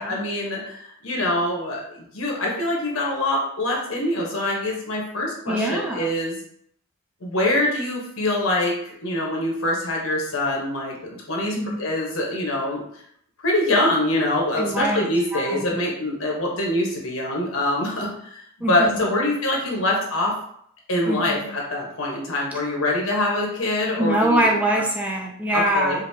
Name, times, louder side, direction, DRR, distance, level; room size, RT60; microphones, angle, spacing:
voice 1, 0.0-6.4 7.2-12.8 13.4-20.3 20.9-24.5 25.5-26.0, left 1 dB, 75° left, -2 dB, 1.2 m, -24 dB
voice 2, 5.5-6.1 11.5-11.8 14.6-15.1 15.3-15.8 18.6-19.2 21.1-21.4 24.0-26.0, right 1 dB, 5° right, -1 dB, 0.4 m, -24 dB
5.2 x 2.7 x 2.8 m, 0.68 s
head